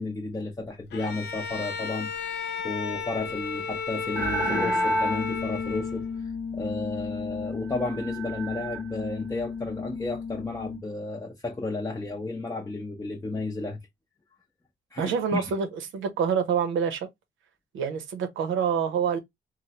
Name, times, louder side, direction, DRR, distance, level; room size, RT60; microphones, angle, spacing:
voice 1, 0.0-2.4 2.6-6.1 6.5-13.8 14.9-15.5, left 2 dB, 15° left, 0.6 m, -33 dB
Bowed string instrument, 0.9-6.2, left 5 dB, 60° left, 0.6 m, -33 dB
sound 1, 4.1-10.8, left 1 dB, 10° right, 0.9 m, -31 dB
voice 2, 15.0-15.7 15.9-17.1 17.7-19.2, right 7 dB, 80° right, 0.7 m, -26 dB
3.1 x 2.1 x 2.8 m
cardioid pair, 90°, 20 cm